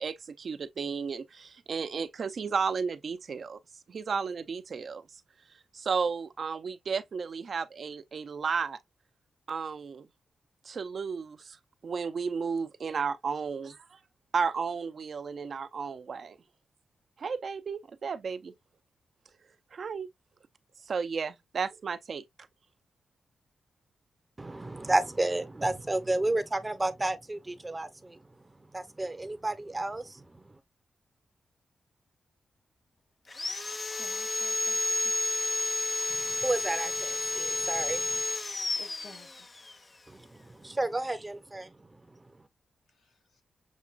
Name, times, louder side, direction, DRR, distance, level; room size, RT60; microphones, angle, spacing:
voice 1, 0.0-3.6 3.9-5.0 5.7-8.8 9.5-10.1 10.6-11.6 11.8-14.0 14.3-16.4 17.2-18.5 19.7-20.1 20.9-22.2, right 5 dB, 60° right, 0.5 m, -33 dB
voice 2, 24.4-28.2 28.7-30.3 36.2-38.2 40.1-42.0, right 2 dB, 20° right, 0.7 m, -32 dB
Sawing, 33.3-39.8, left 2 dB, 30° left, 0.5 m, -31 dB
voice 3, 33.9-35.1 38.8-39.5 42.9-43.4, left 3 dB, 80° left, 2.2 m, -54 dB
7.2 x 2.4 x 2.4 m
cardioid pair, 85°, 0 cm